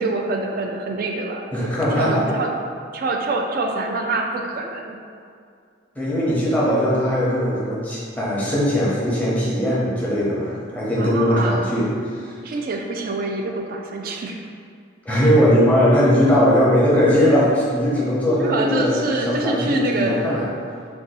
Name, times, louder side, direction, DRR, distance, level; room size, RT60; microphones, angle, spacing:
voice 1, 0.0-1.7 2.0-2.5 2.9-5.0 11.0-11.6 12.4-14.5 18.4-20.2, right 2 dB, 50° right, 2 dB, 0.3 m, -25 dB
voice 2, 1.5-2.2 6.0-12.3 15.1-20.5, equal, 10° left, -7 dB, 0.7 m, -19 dB
2.6 x 2.3 x 4.0 m, 2.3 s
head